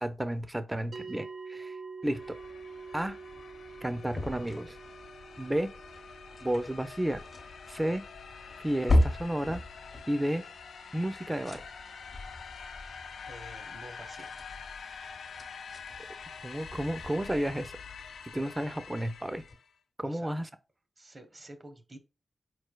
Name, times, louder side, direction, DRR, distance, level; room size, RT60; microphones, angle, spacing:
voice 1, 0.0-1.8 2.0-2.4 2.9-3.2 3.8-4.8 5.4-5.7 6.4-7.2 7.7-8.0 8.6-9.6 10.1-10.4 10.9-11.6 16.4-17.7 18.3-19.4 20.0-20.5, right 1 dB, 20° right, 0.5 m, -32 dB
sound 1, 0.9-11.5, right 4 dB, 80° right, 0.4 m, -48 dB
sound 2, 2.0-19.7, left 6 dB, 90° left, 0.3 m, -47 dB
sound 3, 3.3-10.1 11.1-19.6, left 1 dB, 55° left, 0.8 m, -36 dB
voice 2, 13.3-14.3 20.0-20.3 21.0-22.0, right 1 dB, 40° right, 0.9 m, -49 dB
4.3 x 3.2 x 2.2 m
cardioid pair, 45°, 0 cm